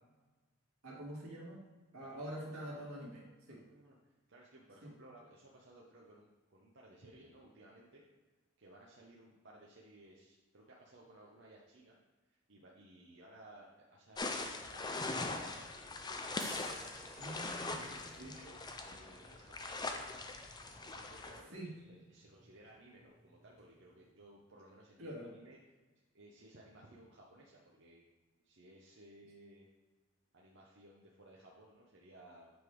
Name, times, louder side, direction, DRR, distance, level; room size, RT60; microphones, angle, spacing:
voice 1, 0.8-1.6 1.9-3.6 4.8-4.9 17.2-17.8 18.2-18.3 21.5-21.7 25.0-25.3, right 1 dB, 80° right, -3 dB, 1.9 m, -45 dB
voice 2, 2.0-2.4 3.5-4.0 4.3-8.0 8.6-12.0 12.3-15.8 16.5-16.8 17.3-19.9 20.8-25.8 26.1-28.0 28.4-29.7 30.3-32.5, right 1 dB, 55° right, -3 dB, 0.8 m, -59 dB
sound 1, 14.2-21.4, left 3 dB, 20° left, 0.4 m, -41 dB
sound 2, 16.3-24.1, right 3 dB, 35° right, 1.5 m, -59 dB
8.0 x 3.4 x 4.6 m, 1.2 s
head